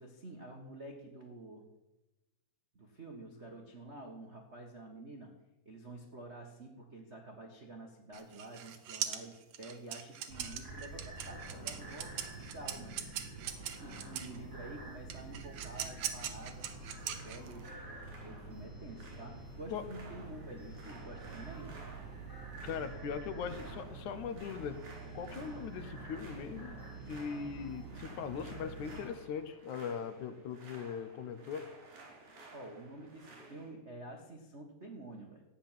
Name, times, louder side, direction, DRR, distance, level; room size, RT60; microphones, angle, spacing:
voice 1, 0.0-1.6 2.7-5.3 5.6-13.1 13.4-16.8 17.2-17.8 18.2-21.7 32.5-35.4, right 2 dB, 45° right, 0 dB, 0.8 m, -49 dB
sound 1, 8.1-14.4 15.1-17.7, right 10 dB, 65° right, 2.1 m, -41 dB
sound 2, 10.3-29.0, right 3 dB, 5° right, 4.1 m, -47 dB
sound 3, 16.6-33.7, right 2 dB, 85° right, 5.6 m, -55 dB
voice 2, 22.6-24.8 25.1-26.8 27.1-31.7, left 7 dB, 70° left, 10 dB, 2.2 m, -40 dB
14.0 x 9.8 x 7.4 m, 1.0 s
omnidirectional pair, 3.9 m